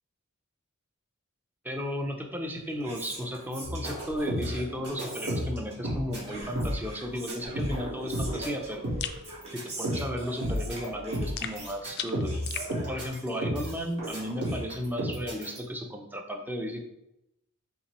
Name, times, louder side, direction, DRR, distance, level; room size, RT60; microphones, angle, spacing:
voice 1, 1.6-8.8 9.5-12.4 12.9-16.8, equal, 10° right, 3 dB, 0.5 m, -34 dB
Whispering, 2.4-15.2, right 2 dB, 30° right, 1.0 m, -46 dB
sound 1, 3.6-6.8 7.1-13.7 14.0-15.6, equal, 55° right, 1.6 m, -33 dB
sound 2, 9.0-9.2 11.4-12.7, left 9 dB, 50° left, 0.3 m, -36 dB
5.4 x 2.9 x 3.1 m, 0.85 s
head